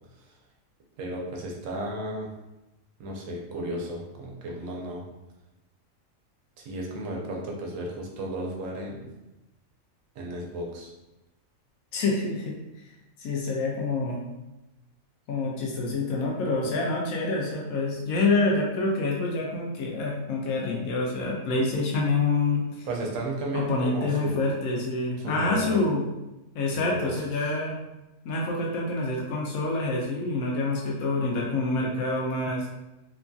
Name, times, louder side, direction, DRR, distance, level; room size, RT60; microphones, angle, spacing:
voice 1, 1.0-2.3 3.0-5.0 6.6-9.1 10.1-10.9 22.8-24.4 25.2-25.8 26.7-27.5, right 1 dB, 75° right, -1 dB, 1.0 m, -34 dB
voice 2, 11.9-12.6 13.2-14.2 15.3-22.9 23.5-26.1 26.5-27.8 28.2-32.7, left 3 dB, 85° left, -2 dB, 1.0 m, -27 dB
2.9 x 2.5 x 2.3 m, 0.98 s
omnidirectional pair, 1.4 m